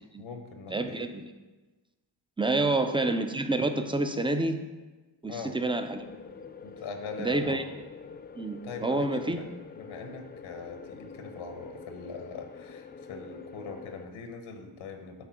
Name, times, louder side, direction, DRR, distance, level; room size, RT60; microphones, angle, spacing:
voice 1, 0.2-1.1 5.3-5.5 6.6-7.7 8.6-9.5 9.8-15.3, left 4 dB, 80° left, 5 dB, 1.2 m, -41 dB
voice 2, 0.7-1.1 2.4-4.6 5.2-6.0 7.2-7.6 8.3-9.4, right 2 dB, 10° right, 7 dB, 0.6 m, -28 dB
sound 1, 5.9-14.1, left 5 dB, 25° left, 0.3 m, -46 dB
8.0 x 3.7 x 6.2 m, 1.2 s
cardioid pair, 70°, 48 cm